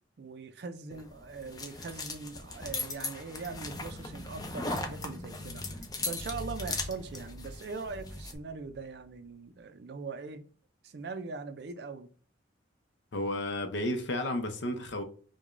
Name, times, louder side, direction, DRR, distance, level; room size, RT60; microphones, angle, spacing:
voice 1, 0.2-10.4 10.8-12.1, right 4 dB, 55° right, 0.4 m, -41 dB
sound 1, 0.9-8.4, left 3 dB, 20° left, 0.4 m, -39 dB
sound 2, 3.3-9.3, left 1 dB, 90° left, 0.9 m, -45 dB
voice 2, 13.1-15.0, left 1 dB, 70° left, 0.6 m, -32 dB
4.6 x 2.2 x 2.4 m
head